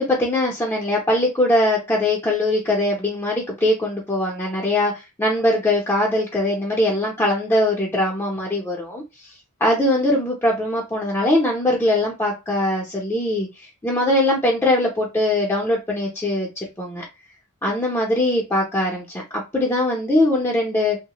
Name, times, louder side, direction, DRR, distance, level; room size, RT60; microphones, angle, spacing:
voice 1, 0.0-4.9 5.2-9.0 9.6-17.0 17.6-21.0, left 1 dB, 10° left, -3 dB, 0.6 m, -21 dB
3.1 x 2.1 x 2.9 m, 0.25 s
head